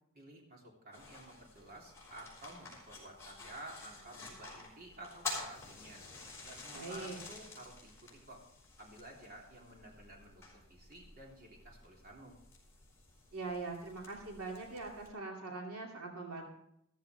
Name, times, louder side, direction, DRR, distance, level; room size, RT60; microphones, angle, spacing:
voice 1, 0.1-6.1 6.4-8.4 8.8-12.4, right 1 dB, 45° right, -1 dB, 3.2 m, -52 dB
sound 1, 0.9-15.1, left 3 dB, 15° left, 4.9 m, -50 dB
voice 2, 6.7-7.2 13.3-16.4, right 3 dB, 80° right, 0 dB, 2.5 m, -42 dB
14.5 x 14.0 x 3.4 m, 0.78 s
head